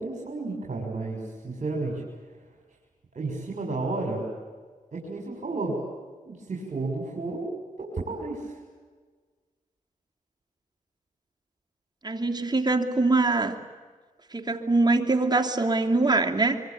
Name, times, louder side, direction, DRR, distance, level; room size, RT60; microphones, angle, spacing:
voice 1, 0.0-2.3 3.1-4.3 4.9-5.8 6.2-7.5 7.8-8.6, right 3 dB, 55° right, -2 dB, 6.7 m, -32 dB
voice 2, 12.0-13.6 14.3-16.6, right 3 dB, 30° right, 3 dB, 2.8 m, -23 dB
25.5 x 25.0 x 8.7 m, 1.5 s
cardioid pair, 55°, 14 cm